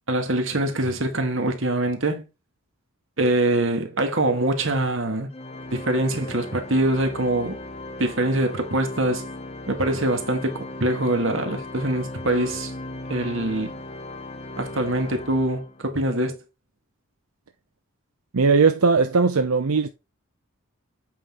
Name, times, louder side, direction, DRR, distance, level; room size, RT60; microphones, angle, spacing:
voice 1, 0.1-2.2 3.2-5.3 5.7-7.6 8.0-9.2 9.7-12.7 13.1-13.7 14.6-16.4, right 1 dB, 60° right, 1.7 m, -24 dB
Organ, 5.3-15.9, left 2 dB, 30° left, 0.7 m, -37 dB
voice 2, 18.3-19.9, right 4 dB, 80° right, 0.6 m, -19 dB
8.4 x 5.7 x 3.7 m
head